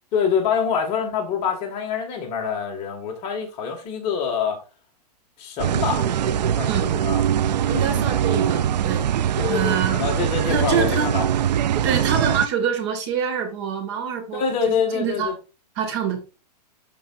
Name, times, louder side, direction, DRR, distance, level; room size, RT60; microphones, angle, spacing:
voice 1, 0.1-4.6 5.4-6.1 6.6-7.2 7.6-8.4 9.4-11.3 14.3-15.3, left 6 dB, 30° left, 2.0 m, -26 dB
sound 1, 5.6-12.5, right 10 dB, 80° right, 0.6 m, -22 dB
voice 2, 7.7-9.1 9.5-10.0 10.5-11.1 11.8-15.3 15.8-16.4, right 7 dB, 40° right, 2.1 m, -26 dB
12.0 x 4.5 x 2.6 m
hypercardioid pair, 155°, 21 cm